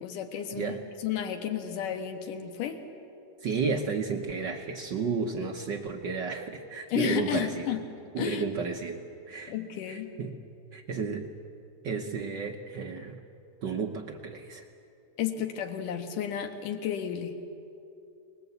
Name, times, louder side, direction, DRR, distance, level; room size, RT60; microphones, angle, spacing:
voice 1, 0.0-2.8 6.9-7.9 8.2-8.4 9.5-10.1 15.2-17.4, left 9 dB, 85° left, 6 dB, 3.1 m, -32 dB
voice 2, 3.4-7.7 8.1-9.0 9.3-9.5 9.9-10.4 10.7-11.3 11.8-13.2 13.6-14.6, right 5 dB, 75° right, 3 dB, 1.0 m, -32 dB
25.5 x 20.5 x 8.1 m, 2.7 s
omnidirectional pair, 3.6 m